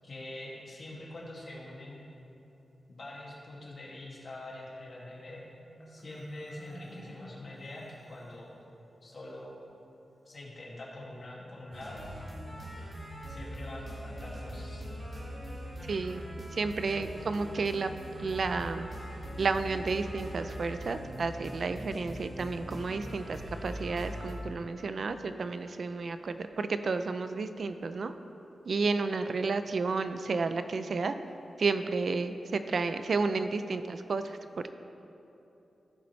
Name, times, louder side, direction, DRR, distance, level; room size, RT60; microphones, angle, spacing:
voice 1, 0.0-2.0 2.9-5.4 5.9-8.5 9.0-9.5 10.3-12.0 13.3-14.8, left 1 dB, 50° left, -4 dB, 2.2 m, -44 dB
Marimba xylophone, 5.1-8.5, equal, 15° left, 1.8 m, -52 dB
sound 1, 11.7-24.3, equal, 35° right, 2.2 m, -41 dB
voice 2, 15.9-16.2 16.5-17.9 18.2-18.9 19.4-28.1 28.7-31.2 31.6-34.4, right 4 dB, 60° right, 9 dB, 0.4 m, -31 dB
14.5 x 6.9 x 3.2 m, 3.0 s
wide cardioid pair, 105°, 0 cm